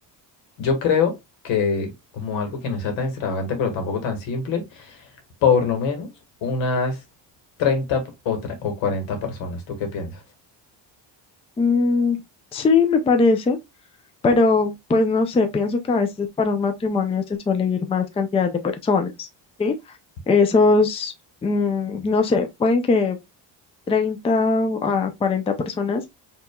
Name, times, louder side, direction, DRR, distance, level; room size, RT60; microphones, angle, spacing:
voice 1, 0.6-1.2 1.4-5.1 5.4-6.1 6.4-7.0 7.6-10.2, left 5 dB, 85° left, 1.7 m, -24 dB
voice 2, 11.6-12.2 12.5-13.6 14.2-19.3 19.6-19.8 20.3-21.1 21.4-23.2 23.9-26.1, left 4 dB, 15° left, 0.4 m, -20 dB
5.5 x 3.0 x 2.2 m
cardioid pair, 155°, 44 cm